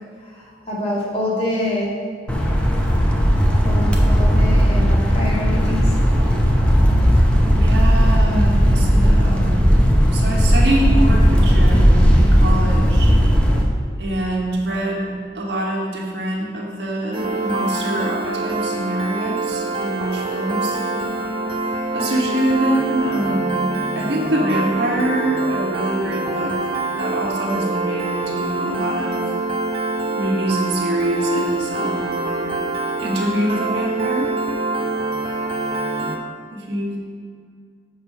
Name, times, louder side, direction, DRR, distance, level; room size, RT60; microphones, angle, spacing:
voice 1, 0.2-1.9 3.6-6.4 6.9-7.0, left 1 dB, 35° left, -6 dB, 2.1 m, -26 dB
sound 1, 2.3-13.6, equal, 5° left, 0.8 m, -15 dB
voice 2, 7.5-9.8 10.1-13.1 14.0-20.8 21.9-26.5 26.9-29.2 30.1-32.5 33.0-34.3 36.5-36.9, right 1 dB, 65° right, -2 dB, 1.4 m, -24 dB
Piano, 17.1-36.2, right 2 dB, 30° right, 0.6 m, -25 dB
6.8 x 5.3 x 5.6 m, 2.1 s
head